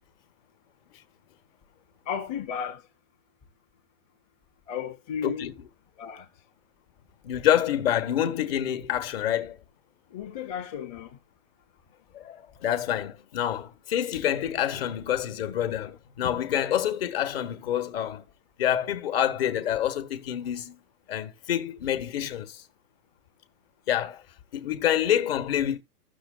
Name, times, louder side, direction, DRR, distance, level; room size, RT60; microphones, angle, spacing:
voice 1, 2.1-2.8 4.7-5.5 6.0-6.3 10.1-11.2, left 7 dB, 20° left, 0.9 m, -34 dB
voice 2, 7.2-9.6 12.1-18.2 18.6-20.8 21.1-22.6 23.9-24.2 24.5-25.8, left 11 dB, 40° left, 1.5 m, -27 dB
15.5 x 6.4 x 2.4 m
hypercardioid pair, 160°, 46 cm